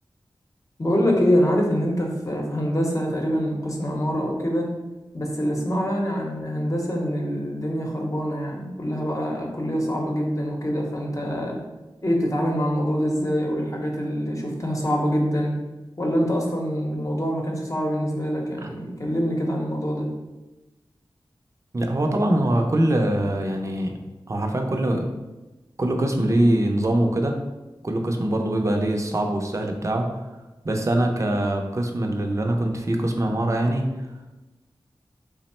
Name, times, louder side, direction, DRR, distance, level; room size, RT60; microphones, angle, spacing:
voice 1, 0.8-4.7 5.1-11.6 12.0-15.5 16.0-20.1, equal, 35° left, 0 dB, 0.8 m, -25 dB
voice 2, 21.7-23.9 24.3-25.1 25.8-27.3 27.8-30.3 30.6-33.8, right 1 dB, 35° right, 3 dB, 0.5 m, -23 dB
3.5 x 2.0 x 4.2 m, 1.1 s
cardioid pair, 50°, 9 cm